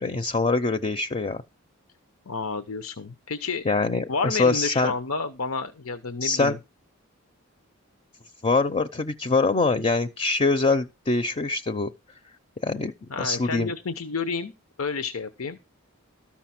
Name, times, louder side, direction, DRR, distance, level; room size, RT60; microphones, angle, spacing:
voice 1, 0.0-1.4 3.6-4.9 6.2-6.6 8.4-11.9 12.6-12.9 13.2-13.7, left 3 dB, 30° left, 0.5 m, -24 dB
voice 2, 2.3-3.6 4.1-6.6 13.1-14.5 14.8-15.6, left 4 dB, 85° left, 0.8 m, -30 dB
13.0 x 5.9 x 5.9 m
head